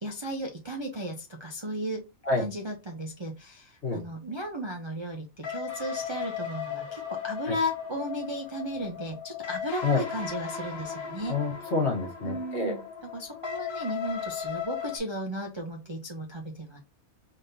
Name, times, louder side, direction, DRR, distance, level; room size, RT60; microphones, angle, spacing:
voice 1, 0.0-2.0 2.4-11.4 12.2-12.8 13.1-16.8, equal, 40° right, 0 dB, 0.4 m, -35 dB
sound 1, 5.4-15.0, left 8 dB, 75° left, 1.6 m, -37 dB
voice 2, 11.3-12.8, left 3 dB, 50° left, 1 dB, 1.4 m, -27 dB
4.0 x 3.6 x 2.6 m, 0.27 s
omnidirectional pair, 1.5 m